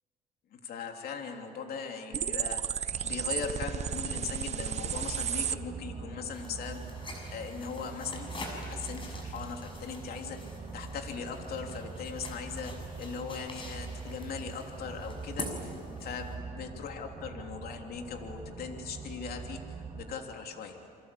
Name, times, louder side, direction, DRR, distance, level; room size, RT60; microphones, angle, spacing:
voice 1, 0.5-2.6 3.0-10.4 10.7-15.7 16.0-20.9, left 6 dB, 65° left, 3 dB, 3.2 m, -39 dB
sound 1, 2.1-5.6, right 8 dB, 40° right, 0.8 m, -33 dB
sound 2, 2.9-20.2, right 4 dB, 20° right, 4.9 m, -43 dB
sound 3, 6.3-16.3, left 2 dB, 30° left, 6.7 m, -46 dB
28.5 x 24.5 x 8.5 m, 2.4 s
cardioid pair, 110°, 17 cm